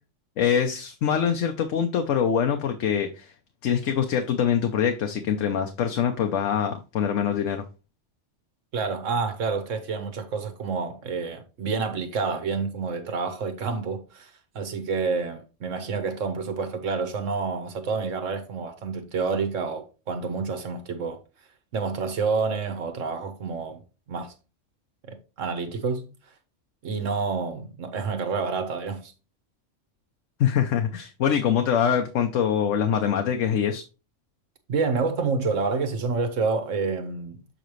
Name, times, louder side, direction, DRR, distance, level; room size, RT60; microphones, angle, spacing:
voice 1, 0.4-3.3 3.6-7.6 30.4-33.8, left 8 dB, 80° left, 1.1 m, -24 dB
voice 2, 8.7-21.2 21.7-23.8 24.1-24.3 25.0-26.1 26.8-29.1 34.7-37.5, right 4 dB, 90° right, 1.5 m, -28 dB
7.6 x 5.1 x 3.1 m
omnidirectional pair, 1.3 m